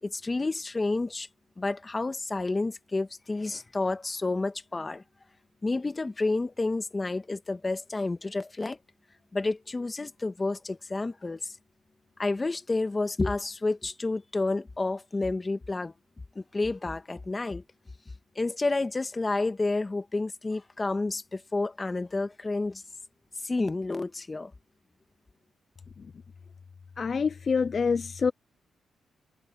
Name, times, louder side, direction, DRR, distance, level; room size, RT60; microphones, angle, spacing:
voice 1, 0.0-1.3 1.6-5.0 5.6-8.8 9.3-11.6 12.2-15.9 16.3-17.6 18.3-22.8 23.4-24.5, left 3 dB, 25° left, 1.6 m, -30 dB
voice 2, 27.0-28.3, left 5 dB, 45° left, 0.4 m, -26 dB
cardioid pair, 85°, 0 cm